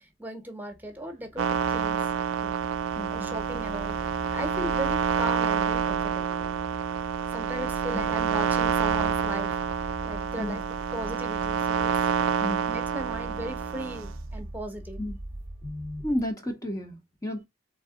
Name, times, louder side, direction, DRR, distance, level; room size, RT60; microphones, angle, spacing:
voice 1, 0.0-2.0 2.4-2.5 3.1-4.0 4.2-6.6 7.3-9.6 10.0-10.6 10.9-11.9 12.6-15.0, right 1 dB, 10° right, 1.1 m, -37 dB
sound 1, 0.7-16.3, right 1 dB, 35° right, 0.7 m, -43 dB
sound 2, 1.4-14.1, right 7 dB, 85° right, 0.4 m, -28 dB
voice 2, 2.9-3.4 7.9-8.1 10.4-10.6 12.4-12.7 15.0-15.2 15.6-17.4, left 1 dB, 20° left, 0.9 m, -32 dB
4.0 x 3.7 x 3.6 m
head